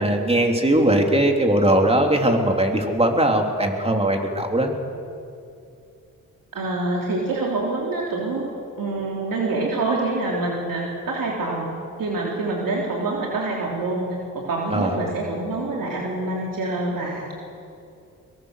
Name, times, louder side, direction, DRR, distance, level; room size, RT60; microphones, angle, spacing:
voice 1, 0.0-4.8 14.7-15.0, right 1 dB, 15° right, 2 dB, 3.5 m, -20 dB
voice 2, 6.5-8.4 8.8-11.7 12.0-14.1 14.3-17.3, right 2 dB, 75° right, -2 dB, 3.5 m, -26 dB
23.5 x 22.0 x 6.7 m, 2.5 s
cardioid pair, 65°, 34 cm